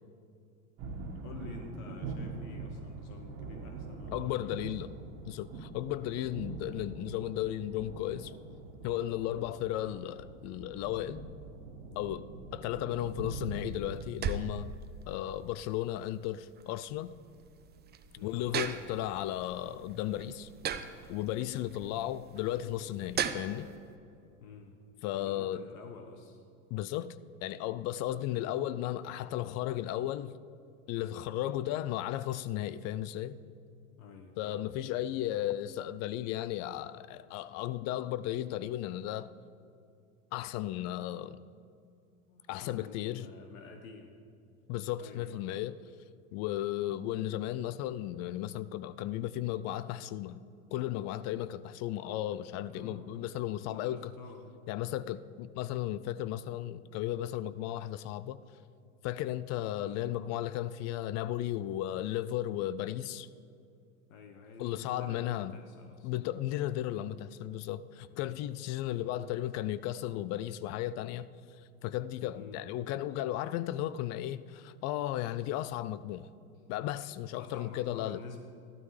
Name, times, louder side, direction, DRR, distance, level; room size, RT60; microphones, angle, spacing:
sound 1, 0.8-14.1, right 3 dB, 55° right, 1.7 m, -43 dB
voice 1, 1.2-4.6 12.8-13.1 18.1-18.4 24.4-24.8 25.1-26.4 28.3-28.5 33.9-34.7 42.3-44.1 45.0-45.5 52.6-53.3 53.6-54.5 59.8-60.1 64.1-66.1 68.8-69.1 72.3-72.7 77.4-78.4, left 4 dB, 70° left, 1.3 m, -49 dB
voice 2, 4.1-4.9 5.3-8.3 8.8-11.2 12.0-14.7 15.1-17.1 18.2-20.5 21.1-23.7 25.0-25.6 26.7-27.2 27.4-30.3 30.9-33.4 34.4-39.3 40.3-41.4 42.5-43.3 44.7-45.8 46.3-50.4 50.7-54.1 54.7-58.4 59.0-63.3 64.6-65.5 66.0-71.3 71.8-76.3 76.7-78.2, left 13 dB, 40° left, 0.4 m, -35 dB
sound 2, 13.0-23.8, right 7 dB, 25° right, 0.6 m, -40 dB
14.5 x 12.5 x 3.3 m
hypercardioid pair, 95°, 42 cm